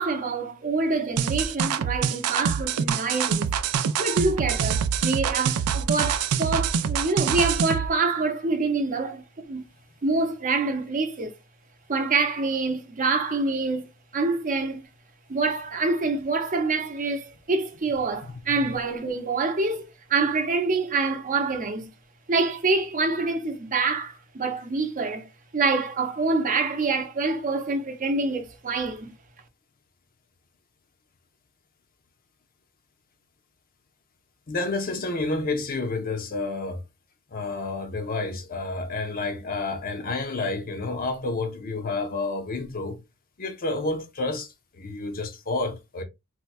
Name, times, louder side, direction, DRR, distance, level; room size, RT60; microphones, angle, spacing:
voice 1, 0.0-3.5 4.0-9.7 10.0-11.3 11.9-14.9 15.3-21.9 22.3-25.3 25.5-29.1, right 3 dB, 35° right, 0.7 m, -26 dB
sound 1, 1.2-7.9, right 7 dB, 85° right, 0.4 m, -25 dB
voice 2, 34.5-36.8 37.3-43.0 43.4-46.0, left 3 dB, 40° left, 0.6 m, -30 dB
4.3 x 2.2 x 2.4 m
head